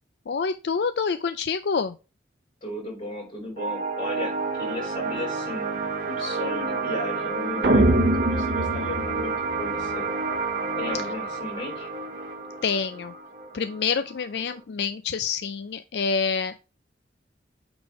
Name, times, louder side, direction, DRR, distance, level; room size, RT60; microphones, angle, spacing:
voice 1, 0.3-1.9 12.6-13.1 13.5-16.6, left 5 dB, 65° left, 10 dB, 0.4 m, -27 dB
voice 2, 2.6-5.7 6.0-10.0 10.7-11.9, left 1 dB, 30° left, 0 dB, 4.7 m, -35 dB
sound 1, 3.6-14.6, right 4 dB, 45° right, 1.2 m, -30 dB
sound 2, 7.6-9.9, right 1 dB, 65° right, 0.8 m, -23 dB
8.6 x 4.1 x 4.6 m, 0.32 s
head